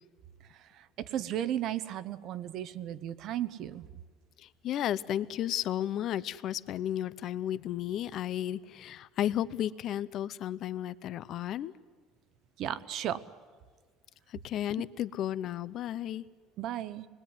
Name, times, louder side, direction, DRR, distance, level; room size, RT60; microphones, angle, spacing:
voice 1, 1.0-3.9 12.6-13.2 16.6-17.1, right 11 dB, 50° right, 14 dB, 1.0 m, -34 dB
voice 2, 4.4-11.7 14.3-16.2, left 11 dB, 45° left, 16 dB, 0.7 m, -33 dB
27.0 x 21.0 x 9.7 m, 1.5 s
cardioid pair, 155°, 0 cm